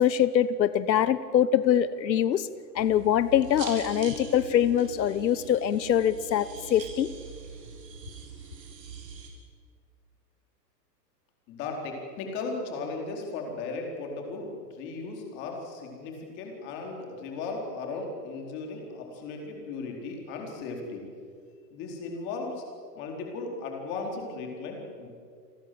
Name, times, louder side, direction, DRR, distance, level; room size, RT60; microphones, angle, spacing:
voice 1, 0.0-2.5 2.7-7.1, left 10 dB, 90° left, 15 dB, 1.2 m, -24 dB
sound 1, 2.8-9.3, right 3 dB, 75° right, 7.1 m, -42 dB
voice 2, 11.5-21.0 21.7-22.6 22.9-25.1, left 3 dB, 20° left, 2 dB, 4.4 m, -36 dB
29.5 x 21.0 x 7.8 m, 2.2 s
hypercardioid pair, 175°, 50 cm